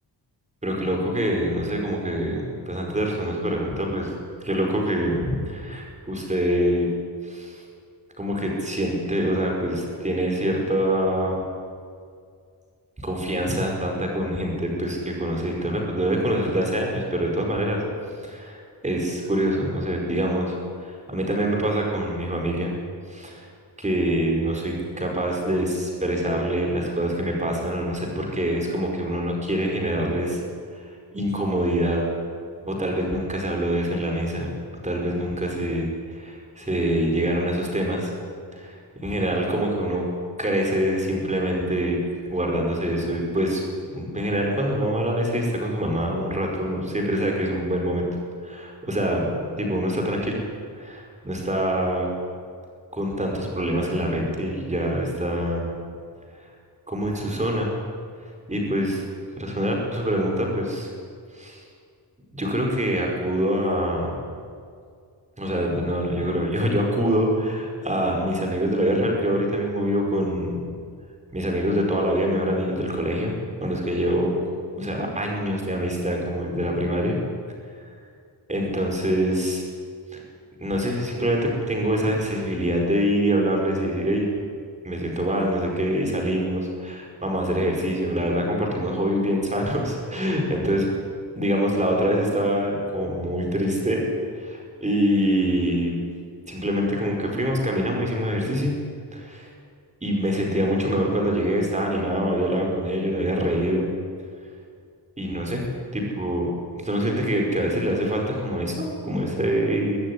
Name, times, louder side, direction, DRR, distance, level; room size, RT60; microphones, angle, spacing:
voice 1, 0.6-4.1 4.4-6.9 7.2-7.6 8.2-11.4 13.0-17.8 18.2-20.6 20.8-22.7 23.1-23.4 23.8-30.4 30.7-30.8 31.1-32.0 32.6-34.5 34.8-38.1 38.5-40.0 40.4-42.0 42.3-43.6 43.9-48.1 48.4-50.4 50.8-52.1 52.9-55.7 56.9-57.7 58.5-59.0 59.4-60.9 61.3-61.6 62.3-64.1 65.4-70.6 71.3-73.3 73.6-74.3 74.8-77.2 78.5-79.6 80.1-80.2 80.6-84.3 84.8-90.9 91.3-94.0 94.3-95.9 96.5-98.7 99.1-99.5 100.0-103.9 105.2-105.6 105.9-106.5 106.8-110.0, equal, 15° right, 0 dB, 5.0 m, -25 dB
22.5 x 14.0 x 9.8 m, 2.2 s
wide cardioid pair, 170°, 42 cm